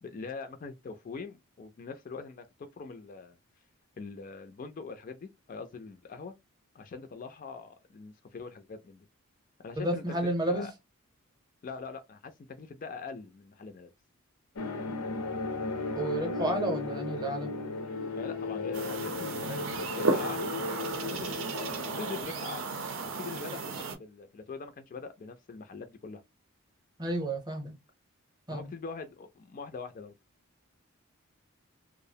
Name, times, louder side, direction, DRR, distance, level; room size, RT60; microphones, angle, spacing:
voice 1, 0.0-3.4 4.0-6.3 6.7-9.1 9.6-10.7 11.6-13.9 18.2-20.5 21.0-21.3 22.0-22.7 23.2-26.2 28.5-30.1, left 4 dB, 40° left, 0.3 m, -43 dB
voice 2, 9.8-10.7 16.0-17.5 27.0-27.8 28.5-28.7, right 1 dB, 20° right, 0.6 m, -31 dB
sound 1, 14.6-22.2, left 3 dB, 85° left, 0.5 m, -36 dB
sound 2, 18.7-24.0, right 3 dB, 65° right, 0.5 m, -34 dB
2.4 x 2.0 x 2.6 m
head